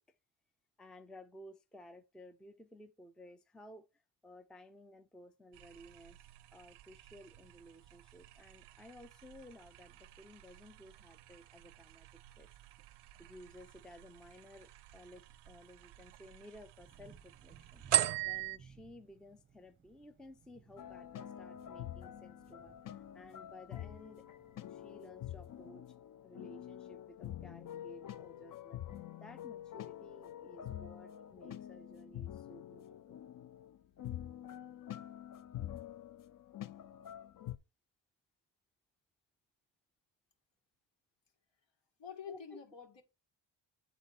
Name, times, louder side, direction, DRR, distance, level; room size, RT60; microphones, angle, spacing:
voice 1, 0.8-6.3 6.5-12.1 12.4-12.5 13.2-17.8 18.2-24.3 24.6-25.8 26.2-28.8 29.2-33.2 42.3-42.6, left 1 dB, ahead, 0.5 m, -56 dB
sound 1, 5.5-18.6, right 12 dB, 65° right, 0.5 m, -42 dB
sound 2, 16.8-25.7, right 7 dB, 25° right, 1.2 m, -62 dB
sound 3, 20.8-37.6, left 11 dB, 45° left, 0.6 m, -47 dB
voice 2, 42.0-43.0, left 7 dB, 65° left, 2.3 m, -47 dB
9.7 x 4.0 x 4.2 m
wide cardioid pair, 155°, 46 cm